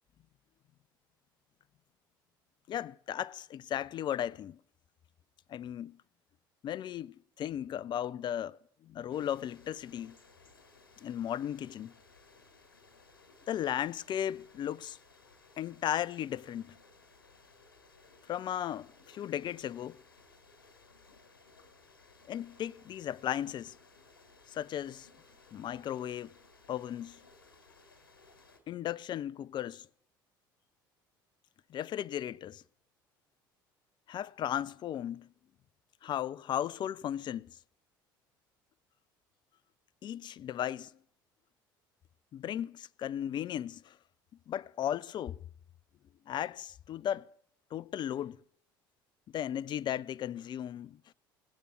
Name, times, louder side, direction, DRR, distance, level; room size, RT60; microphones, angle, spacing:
voice 1, 2.7-4.6 5.5-6.0 6.6-8.6 8.8-10.2 11.0-11.9 13.5-15.0 15.6-16.8 18.3-20.0 22.3-23.8 24.5-25.1 25.5-26.3 26.7-27.2 28.7-29.9 31.7-32.6 34.1-35.3 36.0-37.5 40.0-40.9 42.3-44.0 44.5-45.4 46.3-47.3 47.7-48.4 49.3-51.0, left 10 dB, 40° left, 0.5 m, -36 dB
sound 1, 9.1-28.6, left 3 dB, 90° left, 1.9 m, -60 dB
18.0 x 8.2 x 6.2 m
hypercardioid pair, 65°, 11 cm